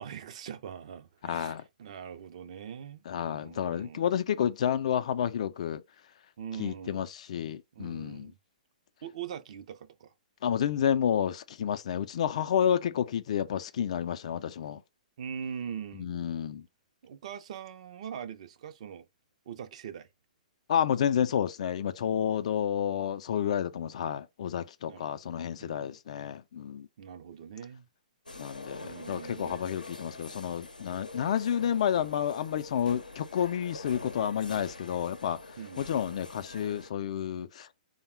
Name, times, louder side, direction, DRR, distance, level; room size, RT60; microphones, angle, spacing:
voice 1, 0.0-4.2 6.4-7.1 7.7-8.4 9.0-10.1 15.2-16.1 17.0-19.1 19.5-20.1 24.9-25.0 25.6-26.0 27.0-27.9 28.8-29.6 35.6-35.9, right 8 dB, 50° right, 0.5 m, -42 dB
voice 2, 1.2-1.6 3.1-5.8 6.6-8.3 10.4-14.8 16.0-16.6 20.7-26.9 28.4-37.7, left 9 dB, 55° left, 0.4 m, -30 dB
sound 1, 28.3-36.9, left 2 dB, 90° left, 0.7 m, -45 dB
3.5 x 2.1 x 4.3 m
figure-of-eight pair, 120°, 4 cm